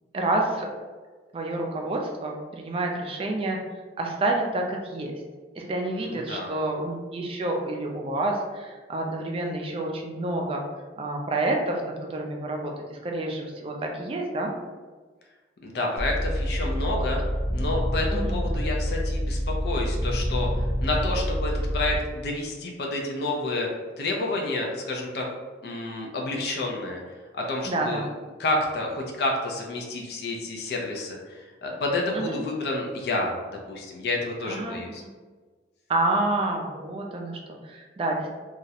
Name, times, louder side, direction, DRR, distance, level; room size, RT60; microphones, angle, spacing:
voice 1, 0.1-0.7 1.3-3.6 4.0-5.1 5.5-10.6 11.0-14.5 17.0-17.1 18.1-18.4 27.6-28.0 32.1-32.4 34.5-35.1 35.9-38.3, right 2 dB, 30° right, 1 dB, 0.3 m, -28 dB
voice 2, 6.0-6.5 15.6-17.2 17.5-23.7 24.0-25.3 25.6-27.0 27.3-28.1 28.4-33.3 33.7-35.0, left 2 dB, 60° left, 0 dB, 0.4 m, -29 dB
sound 1, 16.0-22.0, equal, 20° left, 0.6 m, -27 dB
2.3 x 2.0 x 2.7 m, 1.4 s
head